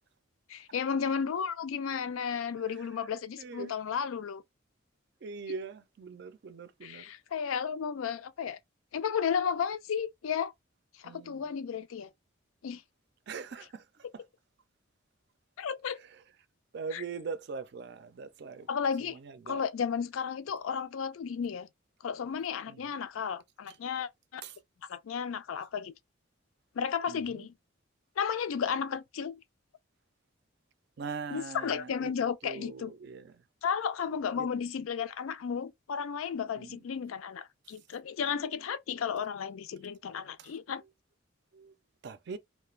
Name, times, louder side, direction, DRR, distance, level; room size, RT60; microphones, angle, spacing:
voice 1, 0.5-4.4 6.8-8.6 8.9-10.5 11.0-12.1 12.6-12.8 14.0-14.1 15.6-16.0 16.9-17.0 18.7-19.2 19.5-21.7 22.0-24.4 24.9-25.9 26.8-27.5 28.2-29.4 31.3-32.9 33.6-40.8, left 7 dB, 85° left, 0.4 m, -33 dB
voice 2, 2.8-3.1 3.4-3.8 5.2-7.1 11.0-11.5 13.3-14.2 16.1-16.2 16.7-18.7 19.0-19.6 22.7-22.9 23.7-23.8 24.4-24.6 27.1-27.5 31.0-32.1 32.4-33.4 34.4-34.5 36.6-36.8 37.7-37.8 40.4-40.6 41.5-41.7 42.0-42.4, right 5 dB, 55° right, 0.4 m, -42 dB
2.4 x 2.1 x 3.1 m
head